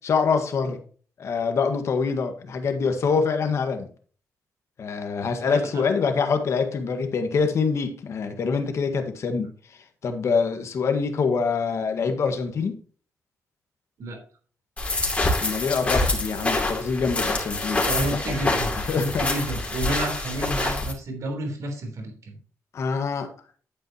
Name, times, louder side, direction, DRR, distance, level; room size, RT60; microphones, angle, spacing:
voice 1, 0.0-0.8 1.2-3.9 4.8-9.5 10.0-12.8 15.4-17.8 18.8-19.2 22.7-23.3, left 5 dB, 60° left, 6 dB, 1.7 m, -25 dB
voice 2, 5.4-5.8 14.0-14.2 17.9-22.4, right 2 dB, 65° right, 3 dB, 3.5 m, -30 dB
sound 1, 14.8-20.9, left 2 dB, 25° left, 2.8 m, -26 dB
10.5 x 8.8 x 3.0 m, 0.42 s
cardioid pair, 125°, 6 cm